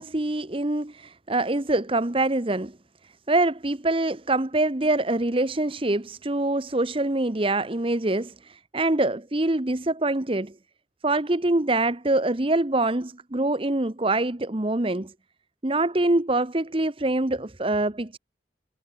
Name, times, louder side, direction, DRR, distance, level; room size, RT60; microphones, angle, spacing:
voice 1, 0.0-2.8 3.3-10.5 11.0-15.1 15.6-18.2, right 2 dB, 30° right, 1.0 m, -25 dB
head